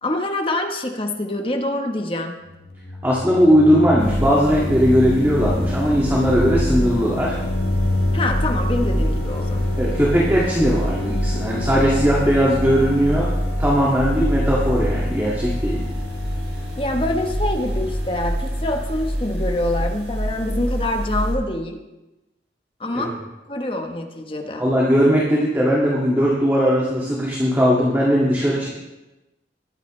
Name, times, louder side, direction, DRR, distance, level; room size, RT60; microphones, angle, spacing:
voice 1, 0.0-2.4 8.1-9.8 16.8-21.8 22.8-23.2 23.5-24.7, left 1 dB, 30° left, 4 dB, 1.1 m, -25 dB
sound 1, 2.5-19.2, left 2 dB, 65° left, 1.3 m, -28 dB
voice 2, 3.0-7.4 9.8-13.3 13.6-15.8 22.9-23.1 24.6-28.7, equal, 10° right, -5 dB, 2.0 m, -18 dB
sound 2, 4.0-21.3, equal, 70° right, 3.6 m, -26 dB
21.0 x 10.0 x 3.3 m, 1.0 s
head